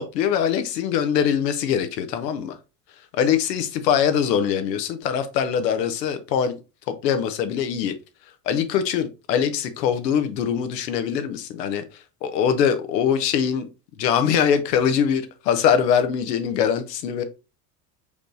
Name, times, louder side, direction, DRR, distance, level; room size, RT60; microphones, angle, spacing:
voice 1, 0.0-2.6 3.1-6.6 6.9-7.9 8.5-11.8 12.2-13.7 14.0-17.2, left 8 dB, 85° left, 0.8 m, -22 dB
5.0 x 3.2 x 2.6 m
hypercardioid pair, 85°, 48 cm